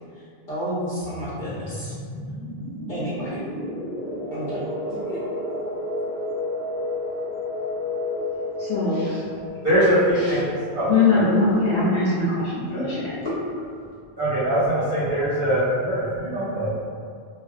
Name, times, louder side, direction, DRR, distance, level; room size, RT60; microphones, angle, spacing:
voice 1, 0.1-1.9 2.9-3.4 4.3-5.2, equal, 60° left, -10 dB, 0.7 m, -32 dB
sound 1, 1.0-11.5, left 1 dB, 10° left, 0.5 m, -32 dB
voice 2, 8.6-9.2 10.1-10.4 10.9-13.4, left 3 dB, 85° left, -8 dB, 0.9 m, -22 dB
voice 3, 9.6-10.9 12.7-12.8 14.2-16.7, right 1 dB, 55° right, -9 dB, 1.1 m, -22 dB
2.5 x 2.2 x 2.4 m, 2.2 s
omnidirectional pair, 1.1 m